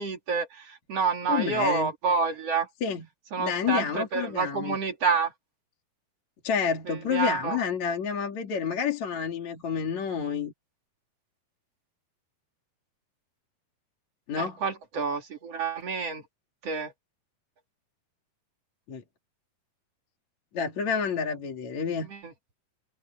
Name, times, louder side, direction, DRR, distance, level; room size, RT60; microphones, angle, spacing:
voice 1, 0.0-2.7 3.3-5.3 6.9-7.6 14.4-16.2 16.6-16.9 22.0-22.3, right 5 dB, 40° right, 3.3 m, -28 dB
voice 2, 1.3-1.9 2.8-3.0 3.4-4.8 6.4-10.5 14.3-14.6 18.9-19.0 20.5-22.1, left 6 dB, 50° left, 3.7 m, -29 dB
omnidirectional pair, 4.6 m